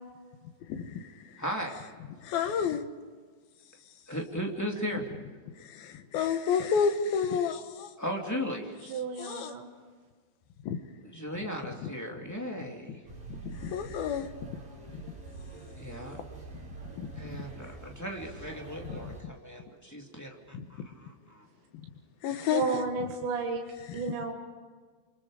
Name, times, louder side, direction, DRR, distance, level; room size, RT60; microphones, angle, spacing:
voice 1, 0.6-1.4 2.2-2.9 3.9-4.0 5.5-7.9 9.2-9.5 10.6-10.8 11.6-11.9 12.2-12.3 12.6-13.0 13.3-14.6 14.9-15.2 16.5-17.7 18.8-19.3 20.5-20.9 21.8-21.9 22.2-22.8 23.8-24.1, left 7 dB, 65° left, 7 dB, 2.6 m, -32 dB
voice 2, 1.4-1.8 4.1-5.0 8.0-8.7 11.1-13.0 15.8-16.2 17.2-20.8 21.3-21.4, equal, 10° left, 0 dB, 0.9 m, -36 dB
voice 3, 8.9-9.7 22.5-23.6 23.9-24.3, right 5 dB, 70° right, 1 dB, 3.8 m, -32 dB
sound 1, 13.1-19.2, right 3 dB, 50° right, 7.7 m, -45 dB
29.0 x 26.0 x 5.0 m, 1.5 s
omnidirectional pair, 5.5 m